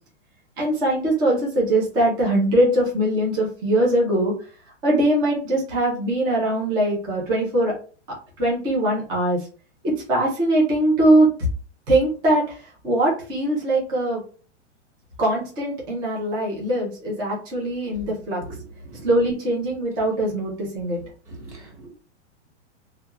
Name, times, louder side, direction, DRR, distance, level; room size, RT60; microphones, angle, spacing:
voice 1, 0.6-4.3 4.8-7.7 8.4-9.4 9.8-11.3 11.9-12.6 12.8-14.2 15.2-18.4 19.0-21.0, right 1 dB, 10° right, -4 dB, 0.4 m, -21 dB
voice 2, 18.4-19.0 21.3-21.9, right 2 dB, 70° right, -1 dB, 1.3 m, -40 dB
2.3 x 2.2 x 2.8 m, 0.39 s
supercardioid pair, 160°, 36 cm